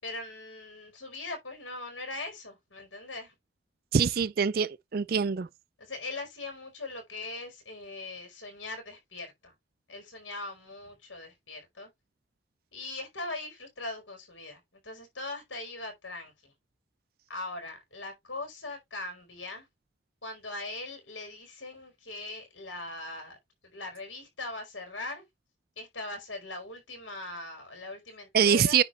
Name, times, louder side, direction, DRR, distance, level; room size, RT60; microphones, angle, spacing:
voice 1, 0.0-3.3 5.8-9.5 9.9-11.9 12.7-16.5 17.3-19.7 20.2-23.4 23.7-25.2 25.8-28.8, left 2 dB, 85° left, 4.5 m, -40 dB
voice 2, 3.9-5.5 28.3-28.8, right 7 dB, 50° right, 0.4 m, -24 dB
9.9 x 4.1 x 4.3 m
head